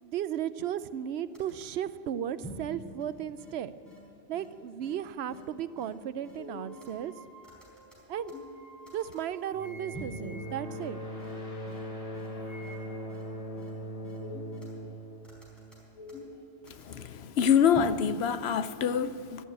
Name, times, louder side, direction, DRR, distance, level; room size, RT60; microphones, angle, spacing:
voice 1, 0.0-3.7 4.3-7.1 8.1-8.3 8.9-11.0, right 10 dB, 75° right, 0.8 m, -35 dB
sound 1, 1.0-1.1 1.3-1.7 2.4-2.7 3.0-3.1 3.4-3.5 3.9-4.0 4.3-4.5 4.8-4.9 5.3-5.4 5.8-5.9 6.2-6.9 7.4-8.6 8.9-9.2 9.9-10.2 10.8-10.9 11.2-11.3 11.7-11.8 12.1-12.3 12.6-12.7 13.1-13.2 13.6-13.7 14.0-14.7 15.2-16.4 16.7-17.0 17.7-18.0 18.3-18.4, left 1 dB, ahead, 4.6 m, -45 dB
sound 2, 6.5-11.8 12.1-13.2, right 1 dB, 90° left, 2.7 m, -53 dB
sound 3, 9.5-16.2, equal, 30° left, 3.2 m, -40 dB
voice 2, 16.9-19.4, left 7 dB, 70° left, 0.9 m, -26 dB
12.0 x 11.5 x 9.3 m
omnidirectional pair, 1.1 m